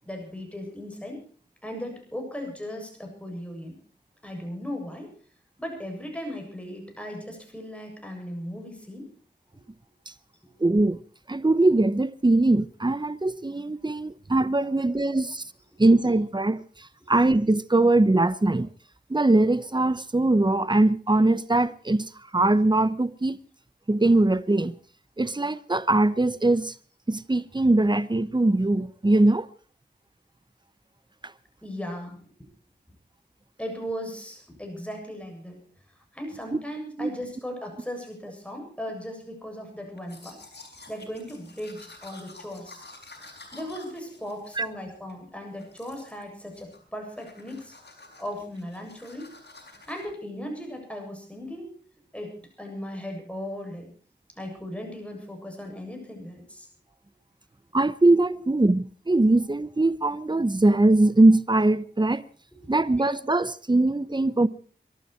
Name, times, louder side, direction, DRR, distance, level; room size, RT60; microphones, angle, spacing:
voice 1, 0.0-1.2 1.6-3.8 4.2-5.1 5.6-9.1 14.6-14.7 15.7-15.8 31.6-32.2 33.6-35.6 36.1-40.4 40.9-42.8 43.5-47.8 48.2-49.3 49.9-51.7 52.1-53.9 54.4-56.7 62.5-62.6, equal, 5° left, 7.6 m, -37 dB
voice 2, 10.6-11.0 11.3-15.4 15.8-16.6 17.1-18.7 19.1-22.1 22.3-23.4 23.9-24.7 25.2-26.7 27.1-29.5 37.0-37.1 44.6-44.7 57.7-62.2 62.7-64.5, right 2 dB, 25° right, 0.9 m, -21 dB
Domestic sounds home sounds, 40.0-45.2 45.6-46.2 46.5-46.9 47.2-50.1, left 2 dB, 65° left, 5.2 m, -49 dB
23.5 x 12.5 x 4.6 m
wide cardioid pair, 45°, 18 cm